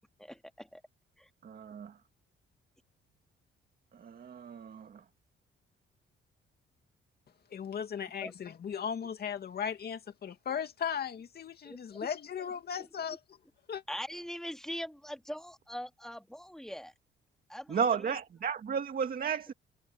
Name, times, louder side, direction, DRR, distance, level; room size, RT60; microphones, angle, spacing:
voice 1, 0.2-0.8 1.2-1.3 8.2-8.3 11.6-12.0 12.4-12.5 12.8-12.9 13.9-16.9 17.5-18.2, equal, ahead, 2.2 m, -42 dB
voice 2, 1.4-2.0 3.9-5.0 17.7-19.5, right 6 dB, 50° right, 1.8 m, -33 dB
voice 3, 7.5-13.2 13.7-13.8, left 7 dB, 55° left, 2.5 m, -37 dB
cardioid pair, 90°, 20 cm